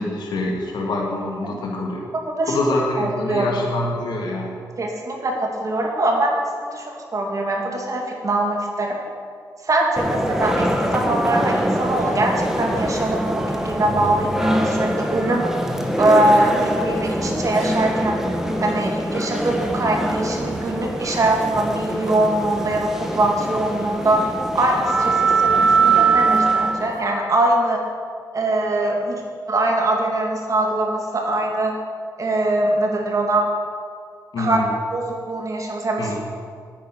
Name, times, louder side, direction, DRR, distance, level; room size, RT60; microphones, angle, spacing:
voice 1, 0.0-2.1 2.5-4.6 34.3-34.7 36.0-36.2, left 2 dB, 70° left, 0 dB, 1.9 m, -25 dB
voice 2, 2.1-2.5 3.0-3.6 4.8-9.0 9.6-15.5 15.9-18.2 18.6-27.8 28.3-31.7 32.2-33.5 34.4-34.6 34.9-36.2, right 1 dB, 45° right, 1 dB, 2.3 m, -22 dB
sound 1, 10.0-27.1, right 2 dB, 5° right, 1.5 m, -23 dB
9.9 x 9.2 x 6.1 m, 2.1 s
cardioid pair, 70°, 7 cm